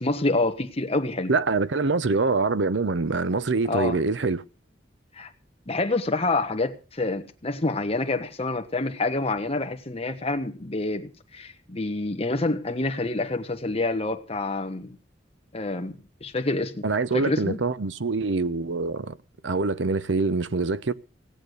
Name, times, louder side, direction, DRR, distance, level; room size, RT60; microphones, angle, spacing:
voice 1, 0.0-1.3 3.7-4.0 5.2-5.3 5.7-15.0 15.5-15.9 16.2-16.8 17.1-17.6, left 2 dB, 35° left, 1.3 m, -27 dB
voice 2, 1.3-4.4 16.8-19.2 19.4-20.9, right 3 dB, 75° right, 0.7 m, -25 dB
17.5 x 8.2 x 6.6 m
head